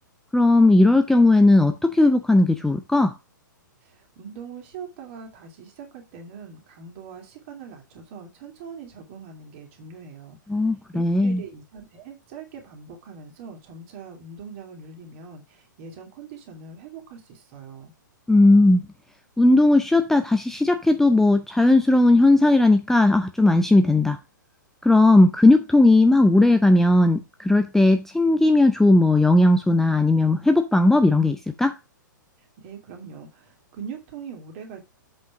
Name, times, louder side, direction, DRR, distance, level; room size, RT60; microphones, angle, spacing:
voice 1, 0.3-3.1 10.5-11.4 18.3-18.8 19.4-24.2 24.8-31.7, left 2 dB, 5° left, 0.5 m, -17 dB
voice 2, 3.8-17.9 32.6-34.8, right 6 dB, 40° right, 2.8 m, -42 dB
7.7 x 5.6 x 4.8 m
figure-of-eight pair, 110°, 11 cm